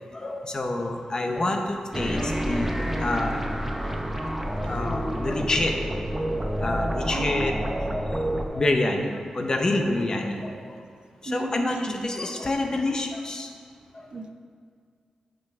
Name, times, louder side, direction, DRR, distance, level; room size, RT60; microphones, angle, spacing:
voice 1, 0.1-3.4 3.8-3.9 4.4-7.5 8.5-10.8 11.2-13.5 13.9-14.1, left 2 dB, 35° left, 3 dB, 0.7 m, -28 dB
sound 1, 1.9-8.4, right 1 dB, 10° right, 0.6 m, -28 dB
voice 2, 7.1-7.5 10.0-10.1 11.3-12.1 14.1-14.3, right 2 dB, 45° right, 4 dB, 0.6 m, -33 dB
10.0 x 5.3 x 3.6 m, 2.2 s
wide cardioid pair, 145°, 2 cm